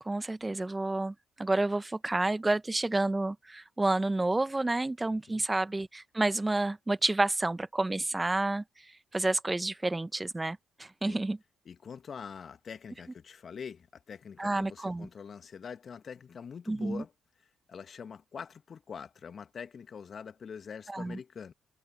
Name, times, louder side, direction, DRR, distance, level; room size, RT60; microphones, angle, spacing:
voice 1, 0.0-8.6 9.1-11.4 14.4-15.1 16.7-17.0 20.9-21.2, right 2 dB, 20° right, 1.5 m, -30 dB
voice 2, 5.1-5.4 11.1-11.2 11.7-17.1 17.7-21.5, left 6 dB, 50° left, 2.1 m, -44 dB
hypercardioid pair, 45°, 0 cm